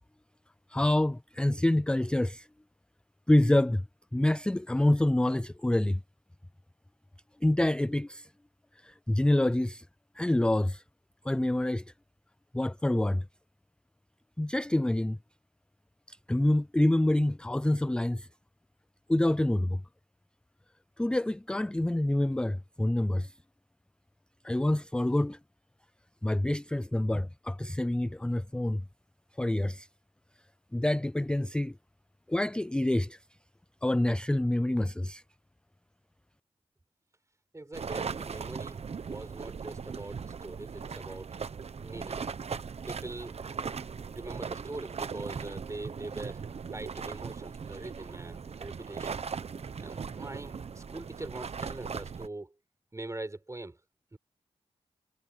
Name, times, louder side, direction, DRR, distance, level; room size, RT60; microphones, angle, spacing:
voice 1, 0.7-2.5 3.3-3.8 4.1-6.0 7.4-8.3 8.8-9.9 10.2-10.8 11.3-11.8 12.5-13.2 14.4-15.2 16.1-18.3 19.1-19.8 21.0-23.3 24.4-25.4 26.2-28.8 29.4-29.9 30.7-31.7 32.3-33.2 33.8-35.2, left 1 dB, 10° left, 0.4 m, -27 dB
voice 2, 37.5-41.4 41.8-42.2 42.9-43.4 44.1-46.4 46.7-49.2 49.8-52.6 52.9-53.8 54.1-54.2, right 2 dB, 25° right, 4.6 m, -42 dB
sound 1, 37.7-52.3, right 6 dB, 60° right, 1.2 m, -39 dB
cardioid pair, 45°, 12 cm